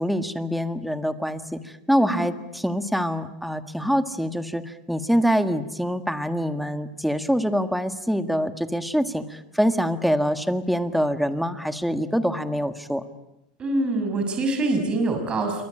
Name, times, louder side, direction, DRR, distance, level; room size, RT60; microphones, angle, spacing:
voice 1, 0.0-13.0, equal, ahead, 9 dB, 1.7 m, -25 dB
voice 2, 13.6-15.6, right 2 dB, 25° right, 5 dB, 6.1 m, -25 dB
28.0 x 24.0 x 8.9 m, 0.87 s
supercardioid pair, 140°, 4 cm